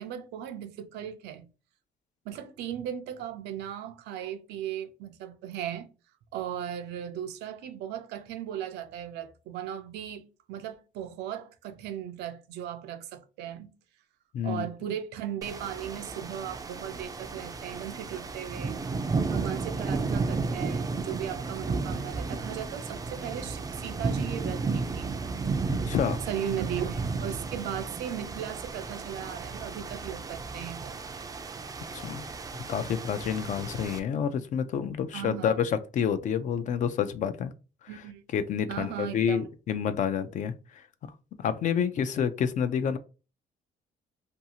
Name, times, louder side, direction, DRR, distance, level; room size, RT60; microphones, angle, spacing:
voice 1, 0.0-1.5 2.3-5.9 6.3-13.7 14.4-18.8 19.3-25.2 26.3-31.0 35.1-35.6 37.9-38.2 38.7-39.5, right 10 dB, 80° right, 0.5 m, -37 dB
voice 2, 14.3-14.7 25.9-26.2 31.9-32.3 32.7-37.5 37.9-38.0 38.3-40.8 41.4-43.0, left 8 dB, 50° left, 0.4 m, -28 dB
sound 1, 15.4-34.0, right 4 dB, 20° right, 0.4 m, -33 dB
2.6 x 2.4 x 2.7 m
cardioid pair, 110°, 17 cm